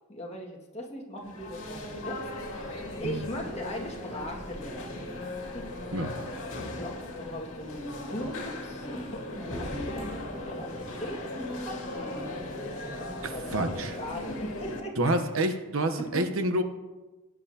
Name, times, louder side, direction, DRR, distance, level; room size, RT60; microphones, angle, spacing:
voice 1, 0.1-2.2 2.5-2.7 3.0-5.3 5.5-5.7 6.7-11.8 12.2-15.1 15.4-15.5 16.0-16.3, equal, 30° left, -2 dB, 1.9 m, -39 dB
sound 1, 1.2-14.8, left 1 dB, 70° left, 2.2 m, -37 dB
voice 2, 13.2-14.0 15.0-16.6, right 1 dB, 85° right, 8 dB, 1.0 m, -28 dB
17.0 x 9.7 x 2.8 m, 1.1 s
head